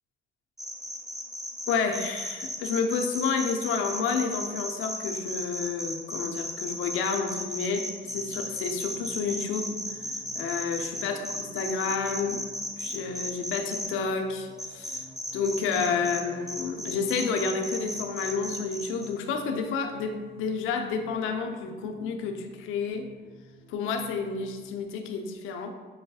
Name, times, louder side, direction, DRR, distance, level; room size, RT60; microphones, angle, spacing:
sound 1, 0.6-13.9 14.6-16.2 16.5-19.1, equal, ahead, 0.5 m, -35 dB
voice 1, 1.7-11.2 11.5-12.5 12.8-15.0 15.3-23.1 23.7-25.7, left 5 dB, 90° left, 5 dB, 0.4 m, -30 dB
sound 2, 8.0-24.8, right 1 dB, 75° right, 1.3 m, -53 dB
5.4 x 2.6 x 2.3 m, 1.4 s
cardioid pair, 90°, 20 cm